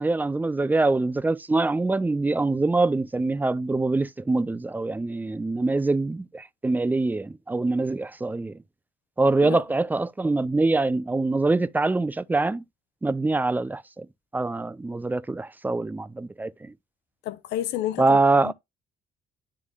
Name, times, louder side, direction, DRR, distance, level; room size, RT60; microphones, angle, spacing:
voice 1, 0.0-8.6 9.2-12.6 13.0-14.1 14.3-16.7 18.0-18.5, right 3 dB, 10° right, 0.4 m, -24 dB
voice 2, 17.2-18.5, left 12 dB, 85° left, 0.7 m, -31 dB
11.0 x 3.8 x 2.4 m
cardioid pair, 110°, 17 cm